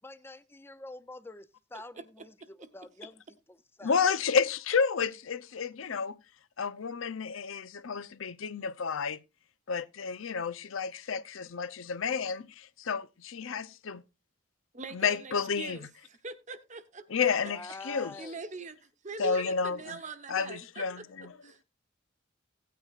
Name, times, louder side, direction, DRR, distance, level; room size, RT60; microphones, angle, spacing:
voice 1, 0.0-3.9 17.4-18.4, left 2 dB, 10° left, 0.5 m, -47 dB
voice 2, 3.8-6.2 6.6-9.2 9.7-14.0 14.9-15.8 17.1-18.1 19.2-20.0 20.3-21.0, left 5 dB, 90° left, 0.6 m, -31 dB
voice 3, 14.7-17.3 18.0-21.0 21.4-21.6, right 3 dB, 40° right, 1.0 m, -42 dB
16.5 x 9.2 x 2.5 m
head